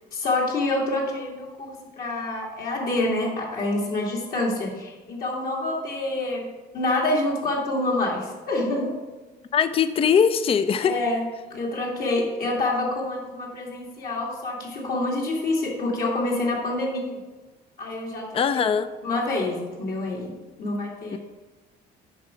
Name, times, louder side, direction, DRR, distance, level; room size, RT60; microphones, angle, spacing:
voice 1, 0.1-6.5 6.7-8.9 10.8-11.2 11.5-17.2 17.8-18.7 19.0-20.3 20.6-21.2, left 2 dB, 60° left, -3 dB, 2.4 m, -27 dB
voice 2, 9.5-11.0 18.3-18.9 21.1-21.2, left 7 dB, 35° left, 12 dB, 0.5 m, -21 dB
8.8 x 5.6 x 5.1 m, 1.2 s
cardioid pair, 110°, 17 cm